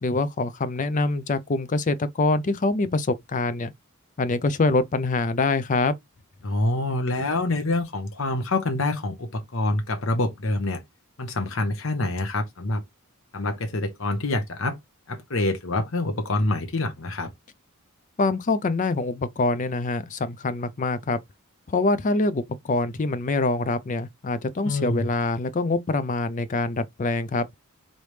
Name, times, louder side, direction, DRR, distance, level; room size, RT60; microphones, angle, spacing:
voice 1, 0.0-3.7 4.2-6.0 18.2-21.2 21.7-27.5, left 3 dB, 35° left, 0.4 m, -25 dB
voice 2, 6.4-10.8 11.2-12.8 13.3-14.8 15.1-17.3 24.6-25.1, left 2 dB, 60° left, 0.9 m, -26 dB
3.9 x 3.2 x 3.2 m
head